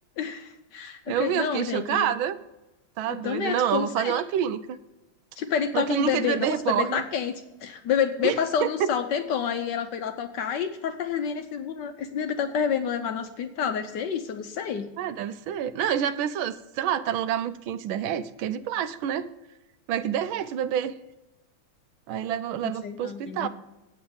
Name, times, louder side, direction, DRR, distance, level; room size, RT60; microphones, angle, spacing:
voice 1, 0.2-2.1 3.1-4.2 5.4-7.3 7.6-14.9 22.6-23.5, left 7 dB, 70° left, 7 dB, 1.2 m, -29 dB
voice 2, 1.1-2.4 3.0-4.8 5.7-7.0 8.2-8.9 15.0-19.3 19.9-20.9 22.1-23.5, right 9 dB, 75° right, 12 dB, 1.3 m, -27 dB
8.8 x 6.8 x 6.9 m, 0.98 s
omnidirectional pair, 2.3 m